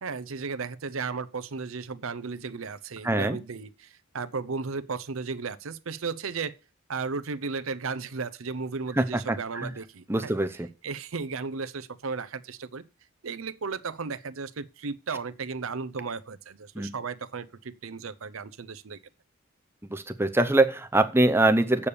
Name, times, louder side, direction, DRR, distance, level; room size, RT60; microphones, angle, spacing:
voice 1, 0.0-3.9 4.1-6.5 6.9-10.4 10.8-12.8 13.2-19.0, right 4 dB, 80° right, 0.7 m, -34 dB
voice 2, 3.0-3.4 8.9-9.7 10.1-10.7 16.8-16.9 19.9-21.9, right 2 dB, 10° right, 0.6 m, -24 dB
8.4 x 7.0 x 6.8 m
head